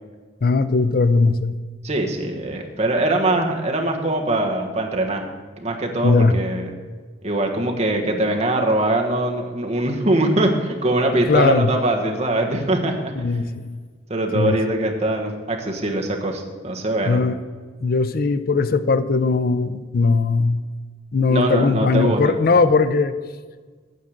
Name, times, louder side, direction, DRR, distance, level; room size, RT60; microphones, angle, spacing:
voice 1, 0.4-1.5 6.0-6.4 11.3-11.7 13.2-13.8 14.3-14.6 17.0-17.4 17.8-20.6 21.1-23.2, left 4 dB, 55° left, 12 dB, 0.5 m, -19 dB
voice 2, 1.8-5.2 5.6-6.7 7.2-13.1 14.1-17.2 21.3-22.3, right 1 dB, 35° right, 2 dB, 1.3 m, -22 dB
9.3 x 7.4 x 6.5 m, 1.5 s
head